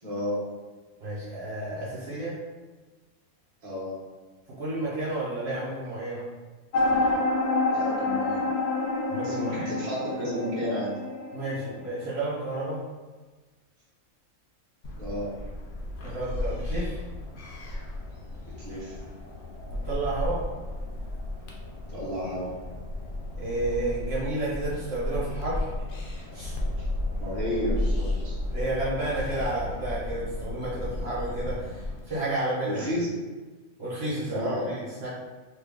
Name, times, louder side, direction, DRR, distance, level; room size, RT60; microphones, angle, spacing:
voice 1, 0.0-0.5 3.6-4.0 7.7-8.5 9.2-11.0 15.0-15.4 18.5-18.9 21.9-22.5 26.8-26.9 27.2-28.4 32.6-33.2 34.3-34.7, equal, 30° right, -8 dB, 1.0 m, -32 dB
voice 2, 1.0-2.4 4.6-6.3 9.1-9.7 11.3-12.8 16.0-16.9 19.8-20.4 23.3-25.7 26.3-26.5 28.5-32.8 33.8-35.1, right 2 dB, 50° right, -9 dB, 1.2 m, -31 dB
sound 1, 6.7-12.3, left 2 dB, 80° left, 1.0 m, -28 dB
sound 2, 14.8-32.0, left 1 dB, 60° left, 0.5 m, -33 dB
3.1 x 2.5 x 3.6 m, 1.3 s
omnidirectional pair, 1.5 m